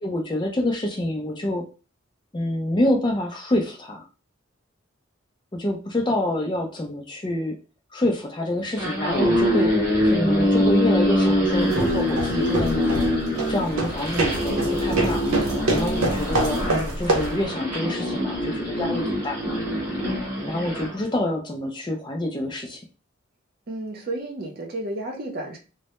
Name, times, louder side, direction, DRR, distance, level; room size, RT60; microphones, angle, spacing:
voice 1, 0.0-1.6 2.3-4.0 5.5-7.5 7.9-9.7 10.0-13.1 13.5-15.2 15.7-19.4 20.5-22.8, left 1 dB, 20° left, 1 dB, 0.4 m, -27 dB
sound 1, 8.6-20.9, equal, 15° right, 0.9 m, -24 dB
sound 2, 11.5-17.4, right 2 dB, 85° right, 0.6 m, -26 dB
voice 2, 23.7-25.6, right 1 dB, 45° right, 1 dB, 0.6 m, -32 dB
2.1 x 2.1 x 2.8 m, 0.33 s
head